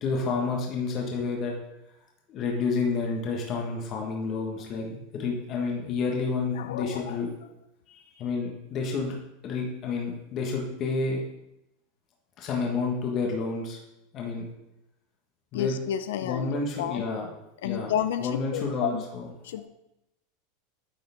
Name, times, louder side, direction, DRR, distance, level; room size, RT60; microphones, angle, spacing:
voice 1, 0.0-1.5 2.3-7.3 7.9-9.2 9.4-11.2 12.4-13.8 14.1-14.5 15.5-15.7 16.2-17.3 17.6-17.9 18.2-19.3, left 4 dB, 40° left, 0 dB, 1.3 m, -30 dB
voice 2, 6.6-7.2 15.5-16.5 16.8-17.0 17.6-19.0 19.4-19.7, left 10 dB, 80° left, 12 dB, 0.5 m, -31 dB
10.0 x 3.8 x 3.5 m, 0.88 s
supercardioid pair, 130°, 0 cm